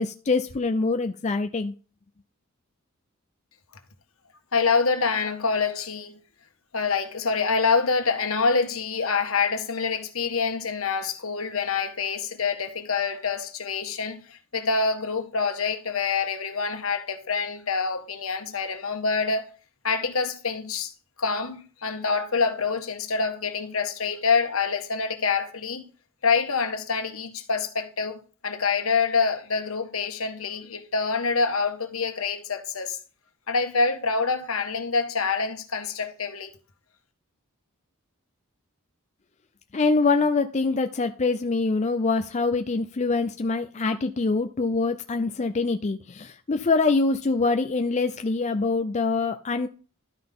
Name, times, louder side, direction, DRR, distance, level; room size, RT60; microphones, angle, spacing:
voice 1, 0.0-1.7 39.7-49.7, left 3 dB, 35° left, 0.5 m, -24 dB
voice 2, 4.5-6.2 6.7-19.5 19.8-20.9 21.2-25.8 26.2-33.0 33.5-36.5, left 4 dB, 70° left, 1.5 m, -26 dB
12.5 x 5.8 x 3.7 m
head